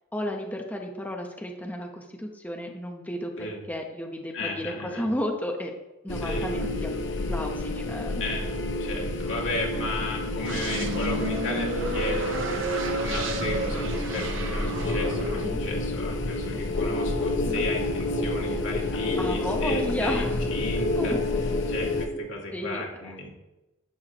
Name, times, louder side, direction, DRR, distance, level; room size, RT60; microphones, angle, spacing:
voice 1, 0.1-5.7 6.0-6.9 7.3-8.2 15.4-15.6 17.4-17.7 19.2-20.4 20.9-21.2 22.1-22.2 22.5-23.3, left 1 dB, 10° left, 1 dB, 0.8 m, -33 dB
voice 2, 4.3-5.1 6.2-6.5 8.2-8.5 8.8-21.2 21.7-23.3, left 1 dB, 85° left, -2 dB, 2.3 m, -34 dB
sound 1, 6.1-22.1, left 2 dB, 70° left, 0.9 m, -29 dB
sound 2, 10.4-15.5, right 2 dB, 85° right, 1.0 m, -32 dB
11.0 x 7.9 x 3.0 m, 0.99 s
head